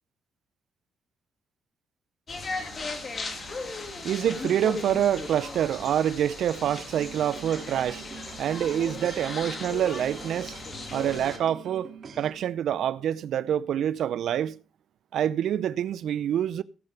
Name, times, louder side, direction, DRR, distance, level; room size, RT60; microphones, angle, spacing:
sound 1, 2.3-11.4, left 3 dB, 40° left, 2.3 m, -37 dB
voice 1, 2.5-10.7 10.9-14.6 15.1-16.6, right 10 dB, 70° right, 0.5 m, -27 dB
sound 2, 6.6-12.3, right 6 dB, 50° right, 2.5 m, -44 dB
17.0 x 8.1 x 3.4 m
cardioid pair, 90°, 0 cm